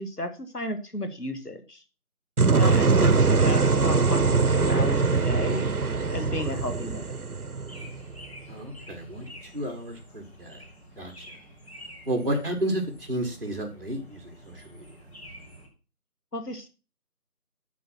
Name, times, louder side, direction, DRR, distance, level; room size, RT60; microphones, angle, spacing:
voice 1, 0.0-1.8 2.5-5.7 6.1-7.1 16.3-16.7, left 1 dB, 85° left, 8 dB, 2.2 m, -33 dB
sound 1, 2.4-8.2, right 4 dB, 75° right, 0.9 m, -22 dB
sound 2, 7.7-15.7, equal, 45° left, 4.1 m, -48 dB
voice 2, 8.5-9.2 9.5-10.6 11.0-11.2 12.1-14.8, right 1 dB, 40° right, 1 dB, 1.6 m, -32 dB
9.5 x 5.9 x 5.9 m, 0.34 s
figure-of-eight pair, 175°, 45 cm